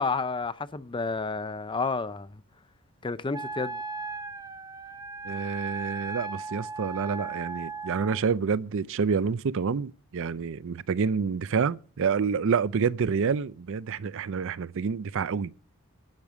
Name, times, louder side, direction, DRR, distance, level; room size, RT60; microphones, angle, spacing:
voice 1, 0.0-2.3 3.0-3.8, left 4 dB, 20° left, 0.5 m, -30 dB
Wind instrument woodwind instrument, 3.3-8.2, right 4 dB, 15° right, 0.6 m, -37 dB
voice 2, 5.2-15.5, right 5 dB, 60° right, 0.5 m, -28 dB
10.5 x 6.6 x 7.3 m
head